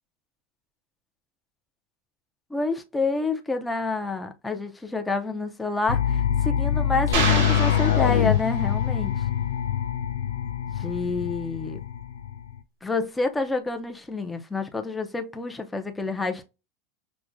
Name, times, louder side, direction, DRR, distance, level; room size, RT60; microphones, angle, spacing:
voice 1, 2.5-9.1 10.8-11.8 12.8-16.4, left 3 dB, 10° left, 0.5 m, -28 dB
sound 1, 5.9-12.6, left 9 dB, 90° left, 0.4 m, -24 dB
sound 2, 7.1-8.9, right 5 dB, 75° right, 1.2 m, -29 dB
6.0 x 2.1 x 2.5 m
supercardioid pair, 150°, 0 cm